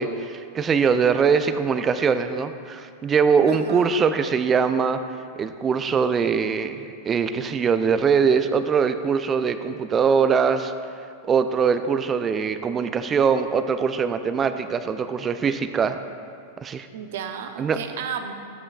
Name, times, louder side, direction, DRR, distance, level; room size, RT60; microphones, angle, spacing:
voice 1, 0.0-5.0 5.4-10.7 11.3-16.0 16.6-16.9 17.6-17.8, right 6 dB, 25° right, 10 dB, 0.5 m, -22 dB
voice 2, 3.5-3.9 16.9-18.3, right 7 dB, 55° right, 7 dB, 0.7 m, -33 dB
14.5 x 8.6 x 2.4 m, 2.4 s
figure-of-eight pair, 90°, 0 cm